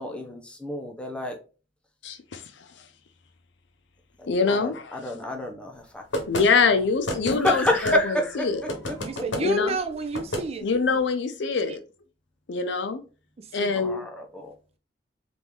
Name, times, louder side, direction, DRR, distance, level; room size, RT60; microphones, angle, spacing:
voice 1, 0.0-1.4 4.5-6.3 7.3-8.7 9.4-9.5 13.8-14.5, left 1 dB, 5° left, 0.6 m, -28 dB
voice 2, 2.0-2.4 4.3-5.0 6.3-8.0 8.4-8.6 9.4-9.8 10.6-11.8 12.5-13.0 13.5-14.1, left 4 dB, 70° left, 0.5 m, -24 dB
sound 1, 6.1-6.5 7.1-8.0 8.7-9.4 10.1-10.5, left 1 dB, 90° left, 0.9 m, -30 dB
voice 3, 9.0-10.6 13.6-13.7, right 3 dB, 35° right, 0.4 m, -30 dB
3.6 x 2.5 x 3.0 m
head